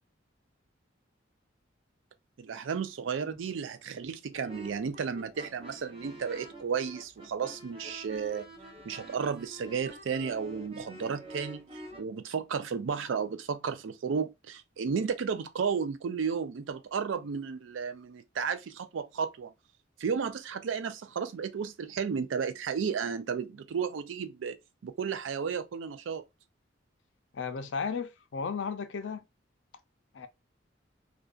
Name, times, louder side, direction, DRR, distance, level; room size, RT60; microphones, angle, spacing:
voice 1, 2.4-8.5 8.8-11.7 12.0-19.5 20.0-24.6 24.8-26.2, right 6 dB, 80° right, 0.4 m, -33 dB
sound 1, 4.3-12.0, equal, 30° right, 0.6 m, -47 dB
voice 2, 27.3-29.2 30.1-30.3, left 5 dB, 70° left, 0.4 m, -34 dB
2.5 x 2.2 x 2.2 m
head